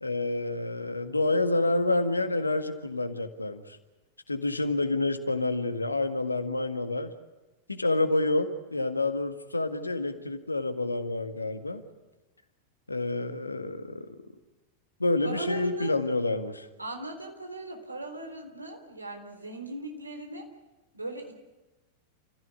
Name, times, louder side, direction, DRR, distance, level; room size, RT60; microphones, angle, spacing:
voice 1, 0.0-3.8 4.3-7.1 7.7-11.8 12.9-14.1 15.0-16.7, left 2 dB, 80° left, 8 dB, 1.8 m, -28 dB
voice 2, 15.2-15.9 16.8-20.5 20.9-21.3, right 1 dB, 85° right, 4 dB, 3.8 m, -38 dB
29.0 x 15.5 x 9.9 m, 1.1 s
figure-of-eight pair, 90°, 0 cm